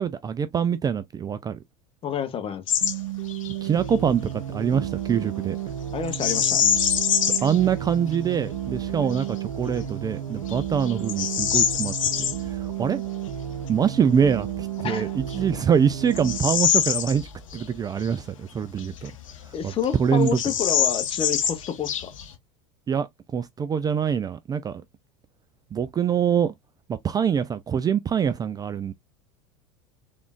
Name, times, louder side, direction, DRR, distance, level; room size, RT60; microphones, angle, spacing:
voice 1, 0.0-1.6 3.6-5.6 7.4-13.0 13.7-17.3 17.5-19.1 19.6-19.7 20.0-20.4 22.9-23.1 23.3-24.8 25.7-26.5 26.9-28.9, right 7 dB, 25° right, 0.4 m, -24 dB
voice 2, 2.0-2.6 5.9-6.6 9.0-9.1 14.8-15.1 19.5-22.1, left 8 dB, 35° left, 1.0 m, -29 dB
Bird vocalization bird call bird song, 2.7-3.0 3.3-3.5 6.1-7.6 8.1-8.2 8.8-9.2 9.8-9.9 10.5-12.4 14.5-14.6 15.2-17.7 18.0-18.1 18.8-19.6 19.8-19.9 20.2-22.3, left 9 dB, 85° left, 0.7 m, -25 dB
sound 1, 2.8-16.4, right 10 dB, 85° right, 0.7 m, -32 dB
3.6 x 3.5 x 2.4 m
hypercardioid pair, 90°, 16 cm